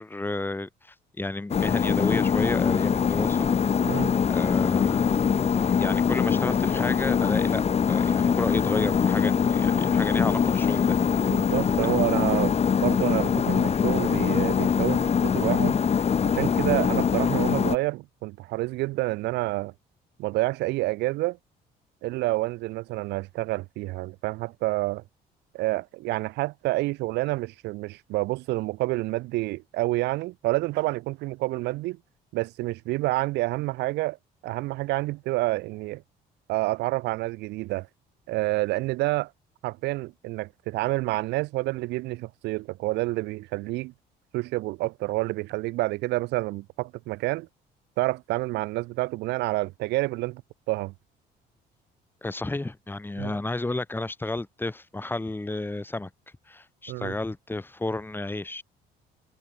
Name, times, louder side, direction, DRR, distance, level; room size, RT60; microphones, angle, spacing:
voice 1, 0.0-3.5 4.3-5.2 5.6-11.0 11.8-11.9 52.2-56.1 56.5-58.6, left 2 dB, 10° left, 6.4 m, -32 dB
sound 1, 1.5-17.8, left 7 dB, 40° left, 5.0 m, -23 dB
voice 2, 11.3-12.5 12.8-15.8 16.2-19.7 20.2-21.4 22.0-25.0 25.5-32.0 32.3-34.2 34.4-36.0 36.5-37.9 38.3-39.3 39.6-43.9 44.3-47.5 48.0-50.4 50.7-50.9 53.2-53.3 56.9-57.1, right 20 dB, 90° right, 3.0 m, -28 dB
cardioid pair, 110°, 17 cm